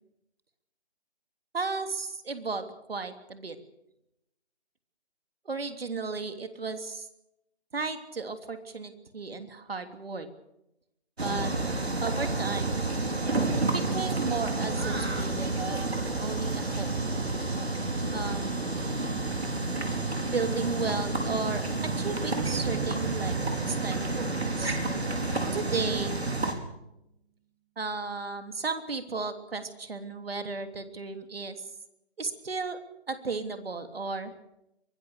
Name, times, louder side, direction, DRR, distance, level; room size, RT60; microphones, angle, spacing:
voice 1, 1.5-3.6 5.4-7.1 7.7-10.3 11.2-11.5 12.0-12.8 13.5-15.9 16.2-17.1 18.1-18.6 20.3-23.4 23.7-24.8 25.5-26.2 27.8-31.5 32.2-32.8 33.1-34.3, right 4 dB, 65° right, 8 dB, 3.2 m, -34 dB
sound 1, 11.2-26.5, right 2 dB, 80° right, 5.2 m, -30 dB
sound 2, 22.4-25.9, right 10 dB, 25° right, 1.4 m, -41 dB
23.5 x 20.0 x 6.7 m, 0.85 s
figure-of-eight pair, 155°, 32 cm